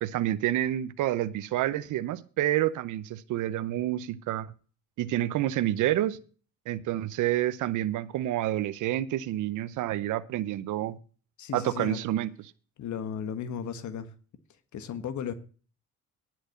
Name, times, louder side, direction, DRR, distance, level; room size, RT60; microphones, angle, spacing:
voice 1, 0.0-4.5 5.0-6.2 6.7-11.0 11.5-12.3, right 13 dB, 80° right, 14 dB, 0.7 m, -28 dB
voice 2, 11.4-12.0 12.8-14.1 14.7-15.3, left 8 dB, 70° left, 11 dB, 1.4 m, -35 dB
10.5 x 6.0 x 8.1 m, 0.39 s
cardioid pair, 90°, 30 cm